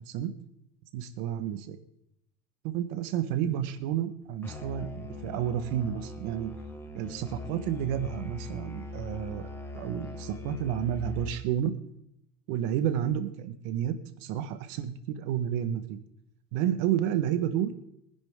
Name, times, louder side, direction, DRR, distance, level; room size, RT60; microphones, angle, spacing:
voice 1, 0.9-1.8 2.6-6.5 6.9-9.5 9.7-11.7 12.5-16.0 16.5-17.7, right 10 dB, 70° right, 10 dB, 1.5 m, -30 dB
Musical instrument, 4.4-11.5, left 2 dB, 5° left, 0.8 m, -41 dB
23.0 x 10.5 x 3.7 m, 0.79 s
cardioid pair, 180°, 39 cm